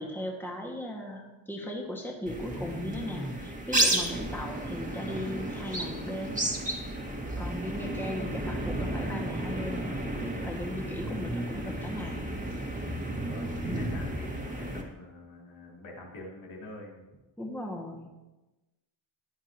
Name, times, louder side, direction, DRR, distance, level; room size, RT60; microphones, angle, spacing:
voice 1, 0.0-6.4 7.4-9.9 10.2-12.2 17.4-18.1, left 1 dB, 5° left, -1 dB, 1.7 m, -37 dB
sound 1, 2.3-14.8, right 1 dB, 15° right, 1.9 m, -32 dB
voice 2, 13.1-17.1, left 2 dB, 90° left, -3 dB, 3.2 m, -46 dB
15.0 x 9.9 x 2.9 m, 1.1 s
wide cardioid pair, 115°, 45 cm